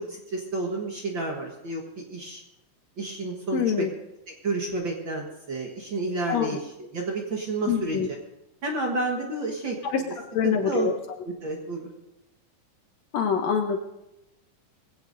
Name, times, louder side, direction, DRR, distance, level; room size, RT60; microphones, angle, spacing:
voice 1, 0.0-1.8 2.1-2.4 3.0-3.9 4.4-8.0 8.6-10.1 10.4-10.9 11.2-11.9, right 2 dB, 50° right, 0 dB, 1.6 m, -30 dB
voice 2, 3.5-3.9 6.3-6.6 7.7-8.1 9.9-10.0 10.3-10.9 13.1-13.8, left 7 dB, 70° left, 4 dB, 1.8 m, -25 dB
21.5 x 16.5 x 2.6 m, 0.91 s
omnidirectional pair, 3.7 m